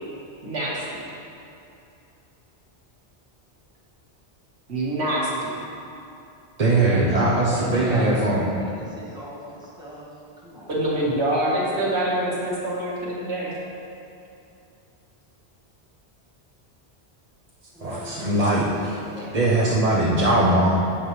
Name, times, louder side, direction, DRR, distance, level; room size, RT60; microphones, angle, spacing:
voice 1, 0.4-0.8 4.7-5.6 10.7-13.5 18.4-18.5, right 1 dB, 75° right, -5 dB, 1.9 m, -25 dB
voice 2, 6.6-8.6 17.8-18.7 19.3-20.7, right 2 dB, 40° right, -7 dB, 0.9 m, -20 dB
voice 3, 7.5-8.3 8.6-11.0 17.7-19.9, equal, 5° right, -8 dB, 1.8 m, -39 dB
9.3 x 8.7 x 3.3 m, 2.8 s
omnidirectional pair, 1.1 m